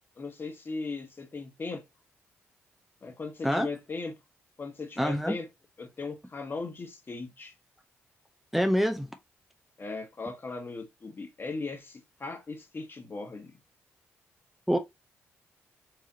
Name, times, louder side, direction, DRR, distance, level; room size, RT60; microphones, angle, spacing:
voice 1, 0.2-1.8 3.0-4.2 4.6-5.5 5.8-7.5 9.8-13.6, left 3 dB, 40° left, 1.4 m, -38 dB
voice 2, 5.0-5.3 8.5-9.1 14.7-14.8, equal, 5° right, 0.6 m, -25 dB
4.9 x 2.8 x 2.7 m
hypercardioid pair, 45°, 6 cm